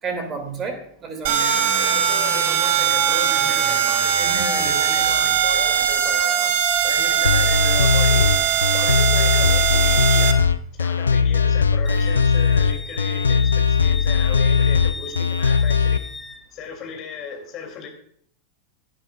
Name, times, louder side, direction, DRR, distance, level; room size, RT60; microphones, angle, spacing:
voice 1, 0.0-1.7 4.2-4.7, right 4 dB, 25° right, 5 dB, 2.6 m, -31 dB
sound 1, 1.2-10.3, right 9 dB, 50° right, 1.2 m, -20 dB
voice 2, 1.4-8.3 8.7-10.5 10.8-16.0 16.5-17.9, left 6 dB, 35° left, 3 dB, 3.0 m, -36 dB
sound 2, 7.2-16.0, left 5 dB, 75° left, 0.4 m, -19 dB
Wind instrument woodwind instrument, 11.8-16.4, left 3 dB, 5° left, 1.0 m, -36 dB
16.5 x 10.5 x 2.5 m, 0.64 s
figure-of-eight pair, 90°, 0 cm